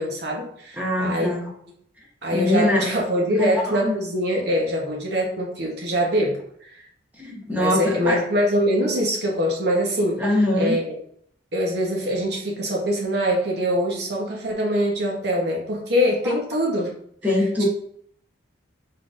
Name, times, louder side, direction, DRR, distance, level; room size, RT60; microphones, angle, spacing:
voice 1, 0.0-1.4 2.2-6.4 6.7-6.8 7.5-10.2 10.6-11.0 11.5-16.9 17.2-17.3 17.6-17.7, equal, 55° right, -1 dB, 0.9 m, -23 dB
voice 2, 0.8-1.5 2.3-2.9 3.4-4.0 7.2-8.2 10.2-10.7 16.2-16.3 17.2-17.7, left 1 dB, 10° right, -2 dB, 0.8 m, -23 dB
3.7 x 3.7 x 2.5 m, 0.66 s
head